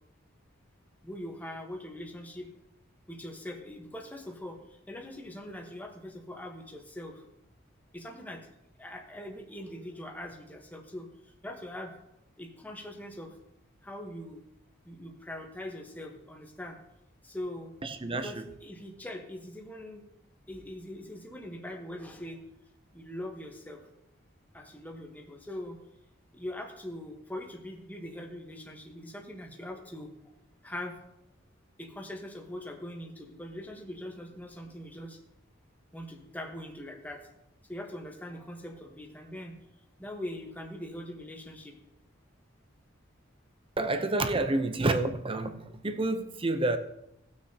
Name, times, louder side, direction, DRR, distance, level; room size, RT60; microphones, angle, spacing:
voice 1, 1.0-2.5 3.1-4.6 4.9-7.2 7.9-8.5 8.8-11.9 12.4-13.3 13.8-14.4 14.8-16.8 17.2-17.7 18.1-20.0 20.5-22.5 22.9-23.8 24.5-25.8 26.3-30.1 30.6-31.0 31.8-35.2 35.9-37.2 37.7-39.6 40.0-41.8, left 1 dB, 10° left, 1.1 m, -42 dB
voice 2, 17.8-18.4 43.8-46.8, right 2 dB, 25° right, 0.7 m, -29 dB
18.0 x 6.3 x 2.8 m
head